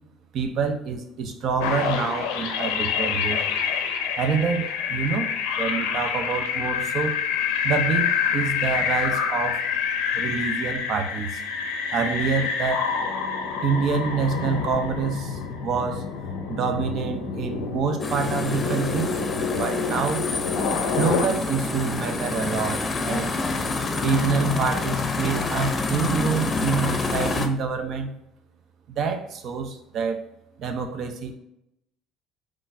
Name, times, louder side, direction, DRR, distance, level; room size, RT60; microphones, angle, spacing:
voice 1, 0.3-3.4 4.2-5.3 5.6-7.2 7.6-9.6 10.1-11.4 11.9-12.9 13.6-16.1 16.5-19.1 19.5-20.3 21.0-23.3 24.0-28.1 28.9-30.2 30.6-31.4, right 5 dB, 60° right, 6 dB, 0.6 m, -26 dB
sound 1, 1.6-21.3, left 6 dB, 80° left, 0.5 m, -27 dB
sound 2, 18.0-27.5, left 3 dB, 30° left, 0.6 m, -27 dB
3.8 x 3.2 x 2.6 m, 0.82 s
supercardioid pair, 75°, 0 cm